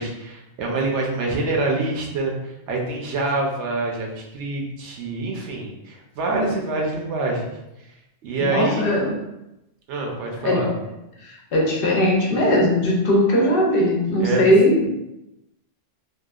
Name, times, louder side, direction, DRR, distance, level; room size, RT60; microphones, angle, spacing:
voice 1, 0.0-2.3 2.7-7.5 8.2-9.0 9.9-10.7 14.2-14.4, right 2 dB, 75° right, -1 dB, 0.9 m, -25 dB
voice 2, 8.5-9.2 10.4-10.7 11.5-15.0, left 1 dB, 60° left, -2 dB, 0.7 m, -19 dB
2.8 x 2.2 x 2.3 m, 0.89 s
omnidirectional pair, 1.2 m